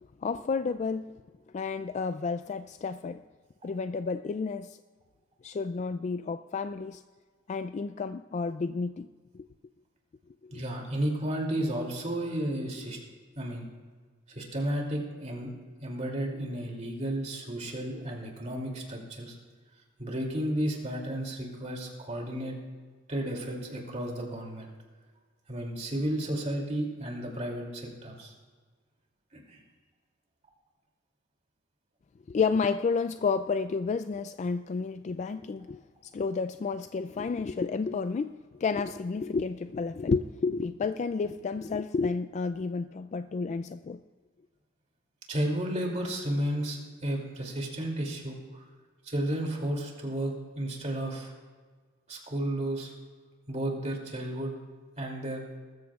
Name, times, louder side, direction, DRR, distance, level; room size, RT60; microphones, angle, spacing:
voice 1, 0.2-1.1 1.5-3.2 3.6-4.8 5.4-7.0 7.5-9.1 9.3-9.5 10.4-10.6 32.3-44.0, left 4 dB, 40° left, 0.3 m, -31 dB
voice 2, 10.5-13.0 13.4-13.7 14.3-15.5 15.8-19.4 20.0-22.6 23.1-24.7 25.5-28.3 29.3-29.6 45.3-48.6 49.0-51.3 52.1-52.9 53.5-54.5 55.0-55.4, right 1 dB, 40° right, 2.7 m, -33 dB
20.0 x 14.0 x 2.4 m
head